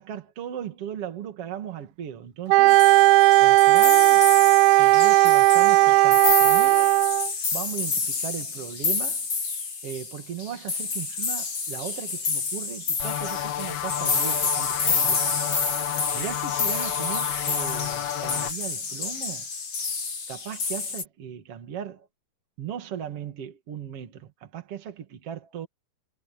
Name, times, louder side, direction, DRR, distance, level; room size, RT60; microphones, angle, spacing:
voice 1, 0.0-2.8 3.4-4.2 4.7-6.9 7.5-9.3 9.8-15.4 16.1-19.5 20.3-22.1 22.6-25.7, right 9 dB, 45° right, 2.9 m, -37 dB
Wind instrument woodwind instrument, 2.5-7.3, right 19 dB, 85° right, 2.4 m, -16 dB
sound 1, 2.7-21.0, left 4 dB, 35° left, 4.2 m, -29 dB
sound 2, 13.0-18.5, left 11 dB, 80° left, 3.2 m, -31 dB
omnidirectional pair, 4.3 m